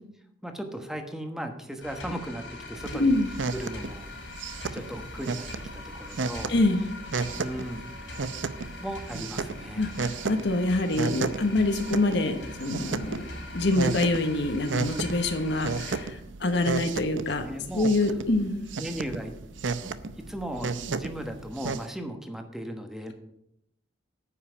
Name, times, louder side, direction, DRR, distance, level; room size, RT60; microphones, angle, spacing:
voice 1, 0.4-3.2 3.5-4.3 4.7-5.5 5.7-6.5 7.3-7.9 8.7-9.9 17.1-17.9 18.8-19.3 19.8-19.9 20.3-23.1, equal, 5° right, 5 dB, 1.2 m, -37 dB
sound 1, 1.8-16.0, left 2 dB, 80° left, 4.3 m, -42 dB
sound 2, 2.8-21.8, right 4 dB, 90° right, 0.7 m, -34 dB
voice 2, 3.0-3.3 6.5-6.8 9.8-13.2 13.5-17.4 17.7-18.7, left 2 dB, 65° left, 6 dB, 1.1 m, -25 dB
9.6 x 5.7 x 8.3 m, 0.78 s
head